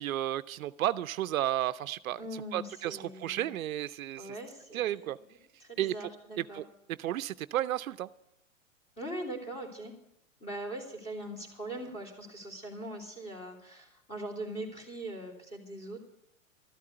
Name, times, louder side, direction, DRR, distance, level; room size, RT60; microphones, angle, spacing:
voice 1, 0.0-2.2 2.5-4.4 4.7-5.2 5.8-6.1 6.4-8.1, right 13 dB, 80° right, 14 dB, 0.6 m, -33 dB
voice 2, 2.2-3.5 4.2-5.0 5.6-6.6 9.0-9.9 10.4-16.0, right 1 dB, 15° left, 0 dB, 3.0 m, -41 dB
13.0 x 8.4 x 7.9 m, 0.82 s
hypercardioid pair, 135°, 41 cm